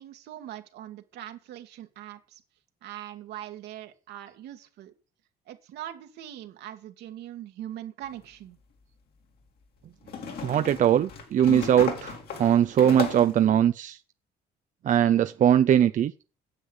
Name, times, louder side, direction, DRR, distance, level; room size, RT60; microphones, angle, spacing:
voice 1, 0.0-2.4 2.8-4.9 5.5-8.6, right 12 dB, 80° right, 2.0 m, -41 dB
sound 1, 8.1-8.2 10.1-13.4, left 6 dB, 65° left, 3.2 m, -35 dB
voice 2, 10.4-14.0 14.8-16.1, right 10 dB, 50° right, 0.6 m, -21 dB
9.8 x 7.8 x 8.1 m
cardioid pair, 110°, 17 cm